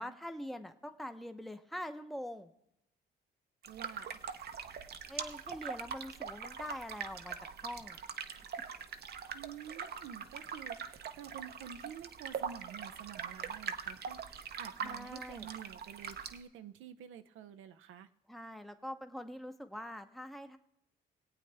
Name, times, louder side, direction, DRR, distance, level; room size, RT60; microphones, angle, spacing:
voice 1, 0.0-2.5 5.1-7.4 7.6-8.0 14.8-15.5 18.3-20.6, equal, ahead, 7 dB, 0.8 m, -44 dB
sound 1, 3.6-16.4, right 7 dB, 55° right, 0.8 m, -43 dB
voice 2, 3.7-4.1 9.3-18.1, right 9 dB, 85° right, 9 dB, 0.7 m, -49 dB
21.5 x 8.5 x 3.4 m, 0.81 s
cardioid pair, 90°, 20 cm